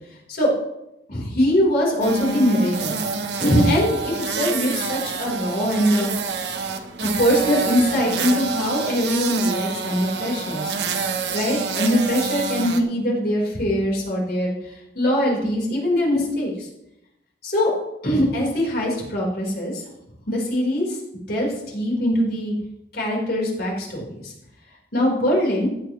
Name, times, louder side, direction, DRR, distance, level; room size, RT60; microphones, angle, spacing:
voice 1, 1.1-2.9 3.4-6.1 7.0-10.7 11.3-16.7 17.4-17.7 18.0-19.8 20.3-21.0 21.3-22.5 22.9-24.3 24.9-25.7, equal, 60° left, -2 dB, 4.3 m, -22 dB
sound 1, 2.0-12.8, right 5 dB, 70° right, 1.1 m, -27 dB
15.0 x 9.5 x 3.2 m, 0.87 s
head